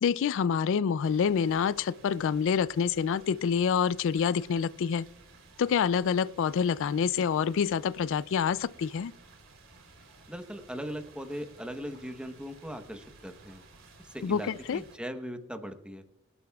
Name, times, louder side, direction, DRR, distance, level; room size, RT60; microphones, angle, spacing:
voice 1, 0.0-5.0 5.6-9.1 14.2-14.8, left 7 dB, 65° left, 0.3 m, -27 dB
sound 1, 1.0-15.0, right 3 dB, 65° right, 3.5 m, -55 dB
voice 2, 10.3-13.6 14.1-16.0, equal, 5° right, 1.0 m, -39 dB
25.0 x 11.5 x 2.3 m
head